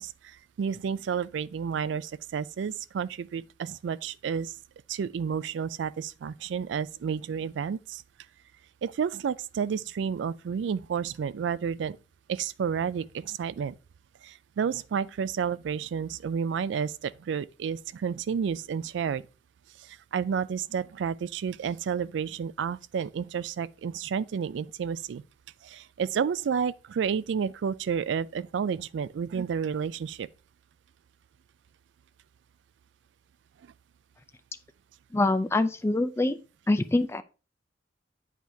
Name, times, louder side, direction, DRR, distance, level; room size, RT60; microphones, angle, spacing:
voice 1, 0.0-4.6 4.9-8.0 8.8-12.0 12.3-13.7 14.2-19.2 19.8-25.2 25.6-30.3 33.6-33.7, right 7 dB, 70° right, 0.3 m, -31 dB
voice 2, 35.1-36.4 36.7-37.2, left 2 dB, 15° left, 0.4 m, -25 dB
8.2 x 4.6 x 2.7 m
head